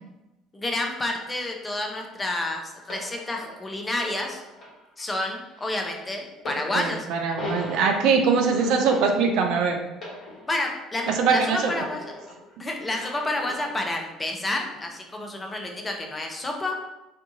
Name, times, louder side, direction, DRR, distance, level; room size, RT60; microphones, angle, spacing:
voice 1, 0.5-4.4 5.0-7.1 10.5-12.1 12.6-16.8, left 2 dB, 20° left, 2 dB, 0.5 m, -29 dB
sound 1, 2.9-12.5 12.9-14.0 14.7-14.9, left 1 dB, 45° left, 1.0 m, -40 dB
voice 2, 6.7-9.8 11.2-11.7, right 5 dB, 60° right, 4 dB, 0.3 m, -22 dB
2.5 x 2.3 x 2.7 m, 0.98 s
figure-of-eight pair, 55°, 0 cm